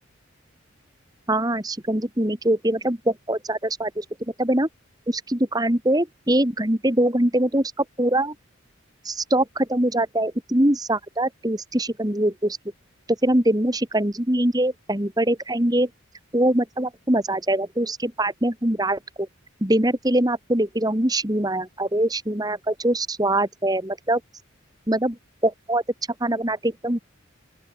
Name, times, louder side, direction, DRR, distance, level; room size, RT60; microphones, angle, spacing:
voice 1, 1.3-4.0 4.4-4.7 5.1-8.3 9.0-12.6 13.2-15.9 16.3-19.3 19.6-24.2 24.9-25.2 25.4-25.8 26.2-27.0, right 1 dB, 20° right, 2.1 m, -23 dB
open air
head